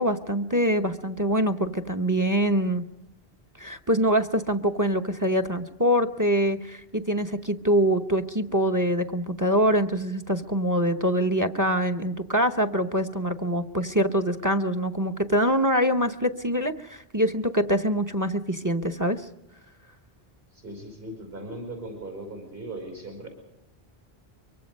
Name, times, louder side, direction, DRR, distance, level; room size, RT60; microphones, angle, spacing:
voice 1, 0.0-2.8 3.6-19.2, equal, 20° right, 9 dB, 0.8 m, -24 dB
voice 2, 20.5-23.3, right 1 dB, 70° right, 4 dB, 5.4 m, -38 dB
24.0 x 23.5 x 5.4 m, 0.91 s
omnidirectional pair, 1.0 m